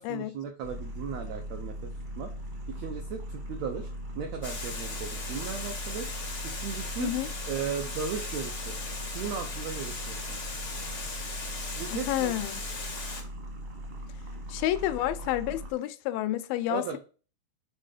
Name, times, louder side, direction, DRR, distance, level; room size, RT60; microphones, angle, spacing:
voice 1, 0.0-2.3 2.7-3.9 4.1-6.1 6.5-7.1 7.4-8.8 9.1-10.4 11.7-12.3 16.7-17.0, right 7 dB, 85° right, 1.5 m, -36 dB
sound 1, 0.6-15.7, equal, 40° right, 0.9 m, -39 dB
Water, 4.4-13.2, left 3 dB, 65° left, 0.7 m, -38 dB
voice 2, 11.9-12.6 14.5-17.0, left 14 dB, 85° left, 2.4 m, -30 dB
6.7 x 3.7 x 4.9 m
omnidirectional pair, 4.0 m